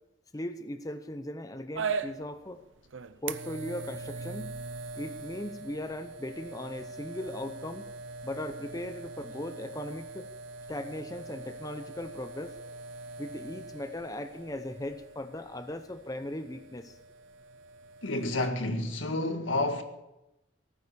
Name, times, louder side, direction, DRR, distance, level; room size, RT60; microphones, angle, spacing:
voice 1, 0.3-2.6 3.2-4.6 4.9-7.9 8.2-10.3 10.7-12.5 13.2-17.0, left 1 dB, 20° left, 0.7 m, -38 dB
sound 1, 1.7-18.5, right 4 dB, 80° right, 0.7 m, -41 dB
voice 2, 18.0-19.8, left 2 dB, 90° left, 1.8 m, -30 dB
18.0 x 9.6 x 6.9 m
head